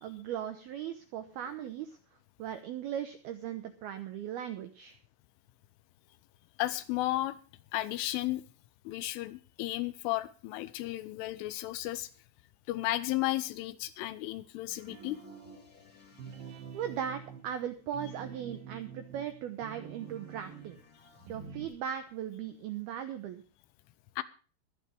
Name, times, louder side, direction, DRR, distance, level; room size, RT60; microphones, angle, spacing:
voice 1, 0.0-2.0 2.4-5.0 16.7-20.8 21.3-23.4, right 9 dB, 85° right, 9 dB, 2.2 m, -38 dB
voice 2, 6.6-7.4 7.7-8.4 8.9-12.1 12.7-15.2 24.2-24.3, left 16 dB, 80° left, 14 dB, 3.3 m, -33 dB
sound 1, 14.7-17.9 19.9-21.3, left 5 dB, 30° left, 1.7 m, -61 dB
sound 2, 14.9-15.7 16.1-20.8 21.2-21.7, right 7 dB, 60° right, 2.9 m, -47 dB
23.0 x 9.4 x 3.4 m, 0.38 s
omnidirectional pair, 5.8 m